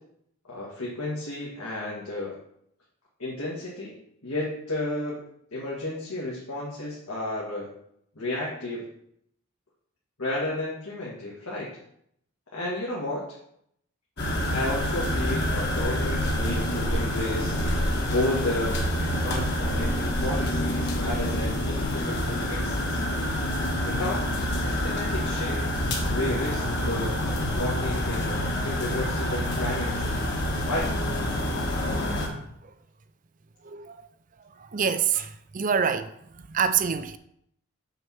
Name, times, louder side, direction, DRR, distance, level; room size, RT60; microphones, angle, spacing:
voice 1, 0.5-2.4 3.2-3.9 4.2-5.2 5.5-7.7 8.2-8.8 10.2-11.7 12.5-13.2 14.5-17.6 18.0-18.7 19.2-23.0 23.9-30.2 30.7-30.9, left 1 dB, 85° left, 1.9 m, -32 dB
sound 1, 14.2-32.3, equal, 50° left, 1.4 m, -27 dB
voice 2, 33.6-34.0 34.6-36.1 36.5-37.2, right 7 dB, 35° right, 0.4 m, -26 dB
6.3 x 4.4 x 6.3 m
head